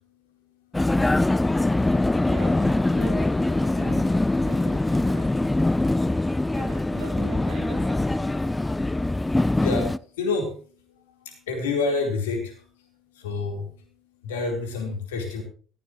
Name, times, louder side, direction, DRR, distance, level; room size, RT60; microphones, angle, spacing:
Vehicle, 0.7-10.0, left 2 dB, 15° left, 0.6 m, -23 dB
voice 1, 2.2-4.1 4.4-5.5 6.5-8.1, right 5 dB, 80° right, 2 dB, 2.8 m, -41 dB
voice 2, 9.6-10.5 11.2-12.5 13.2-13.7 14.2-15.4, left 3 dB, 80° left, 3 dB, 4.3 m, -28 dB
16.5 x 15.5 x 3.2 m, 0.41 s
hypercardioid pair, 55°, 0 cm